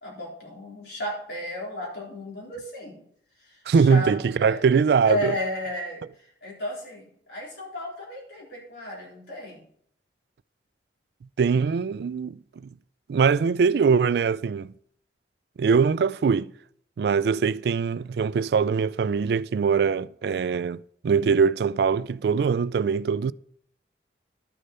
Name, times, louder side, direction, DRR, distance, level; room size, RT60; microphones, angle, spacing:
voice 1, 0.0-3.0 3.4-4.6 5.1-9.6, left 1 dB, 65° left, 4.1 m, -34 dB
voice 2, 3.7-5.4 11.4-12.4 13.1-14.7 15.6-16.5 17.0-23.3, right 5 dB, 60° right, 0.3 m, -22 dB
12.0 x 6.6 x 5.5 m
head